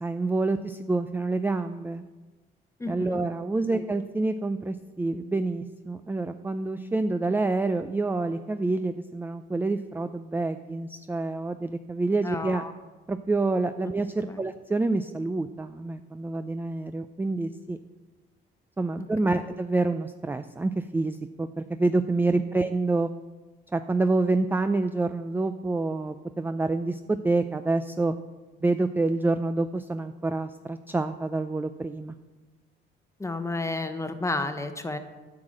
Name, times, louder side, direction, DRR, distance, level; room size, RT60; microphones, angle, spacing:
voice 1, 0.0-2.1 2.9-12.6 13.1-17.8 18.8-23.1 23.7-28.2 28.6-32.1, right 2 dB, 10° right, 10 dB, 0.4 m, -27 dB
voice 2, 2.8-3.2 3.7-3.8 12.2-12.7 14.3-14.4 19.0-19.4 33.2-35.0, left 2 dB, 15° left, 9 dB, 0.9 m, -32 dB
9.3 x 4.9 x 7.6 m, 1.2 s
cardioid pair, 90°, 20 cm